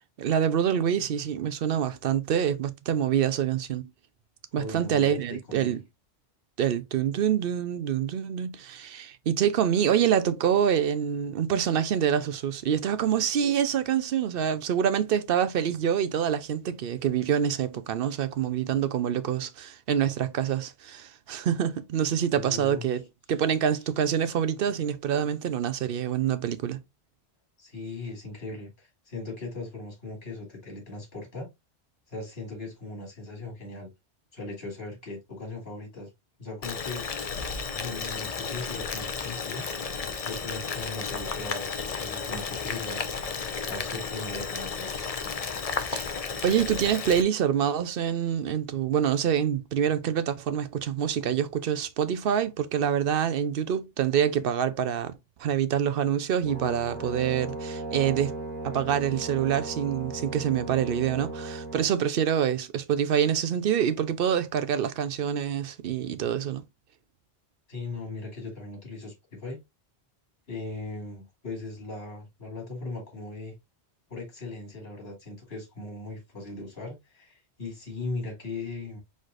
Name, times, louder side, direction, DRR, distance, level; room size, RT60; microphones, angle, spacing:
voice 1, 0.2-3.9 4.5-5.8 6.6-26.8 45.9-46.1 46.4-55.1 55.4-58.3 58.6-66.6, right 9 dB, 60° right, 0.7 m, -26 dB
voice 2, 4.5-5.8 22.3-22.9 27.6-31.5 32.1-33.9 34.3-36.1 36.4-37.1 37.7-39.7 40.2-43.0 43.7-44.9 67.7-69.6 70.5-73.5 74.1-79.0, left 3 dB, 60° left, 2.5 m, -38 dB
Boiling, 36.6-47.2, left 5 dB, 40° left, 0.6 m, -33 dB
Brass instrument, 56.4-61.9, right 2 dB, 10° left, 2.1 m, -36 dB
4.7 x 4.4 x 2.4 m
omnidirectional pair, 1.1 m